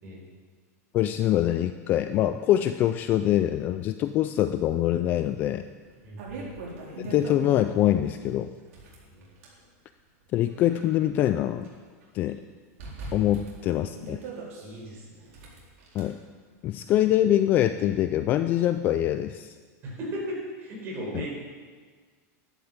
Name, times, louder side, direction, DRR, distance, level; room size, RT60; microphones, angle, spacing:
voice 1, 0.9-5.6 7.0-8.5 10.3-11.7 12.1-12.4 13.1-14.2 15.9-16.2 16.6-19.5 21.1-21.3, left 12 dB, 20° left, 10 dB, 0.3 m, -24 dB
sound 1, 5.2-5.3 5.8-7.9 8.6-9.6 10.3-11.7 12.0-12.1 12.8-14.6 15.3-16.0, right 3 dB, 60° right, 4.1 m, -40 dB
voice 2, 6.0-6.5 9.1-9.2 14.6-15.6 19.8-21.3, equal, 25° right, -3 dB, 4.6 m, -37 dB
12.0 x 11.5 x 7.4 m, 1.5 s
supercardioid pair, 180°, 8 cm